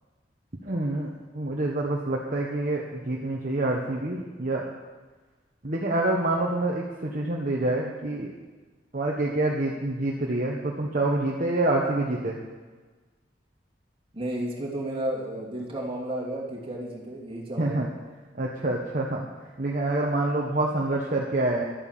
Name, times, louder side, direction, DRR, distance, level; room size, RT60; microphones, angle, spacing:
voice 1, 0.6-1.1 1.3-4.6 5.6-8.3 8.9-12.4 17.6-17.9 18.3-19.3 19.6-21.6, right 2 dB, 50° right, -2 dB, 1.3 m, -27 dB
voice 2, 14.1-17.9, right 1 dB, 30° right, -2 dB, 2.7 m, -32 dB
12.0 x 9.0 x 7.5 m, 1.3 s
head